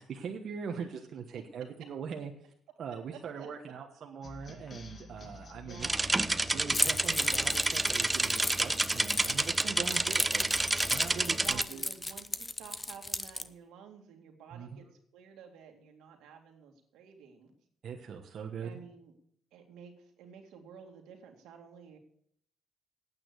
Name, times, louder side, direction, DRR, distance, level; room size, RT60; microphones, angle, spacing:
voice 1, 0.0-2.5 2.8-5.9 6.5-10.4 10.9-11.8 14.5-14.8 17.8-18.7, right 6 dB, 60° right, 2 dB, 1.2 m, -41 dB
voice 2, 3.1-3.5 5.5-6.1 9.8-10.2 11.4-14.8 15.1-17.5 18.6-19.1 19.5-22.0, right 7 dB, 90° right, 3 dB, 2.2 m, -51 dB
sound 1, 4.2-9.8, left 3 dB, 40° left, 1.9 m, -50 dB
sound 2, 5.8-11.6, right 2 dB, 15° right, 0.5 m, -29 dB
Keys jangling, 6.7-13.5, left 2 dB, 20° left, 0.7 m, -36 dB
9.0 x 8.8 x 8.2 m, 0.66 s
cardioid pair, 90°, 0 cm